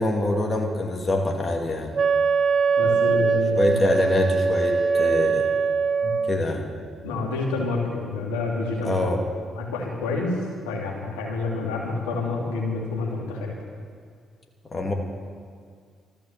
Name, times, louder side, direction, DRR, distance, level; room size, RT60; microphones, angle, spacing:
voice 1, 0.0-1.9 3.5-5.5 6.3-6.7 8.8-9.2 14.6-14.9, left 1 dB, 35° left, 1 dB, 2.6 m, -24 dB
Wind instrument woodwind instrument, 1.9-6.4, right 5 dB, 50° right, 0.7 m, -22 dB
voice 2, 2.8-3.7 6.0-6.1 7.0-9.0 9.6-10.4 10.6-13.5, left 3 dB, 85° left, -2 dB, 2.8 m, -28 dB
14.5 x 12.5 x 7.4 m, 2.1 s
hypercardioid pair, 50°, 0 cm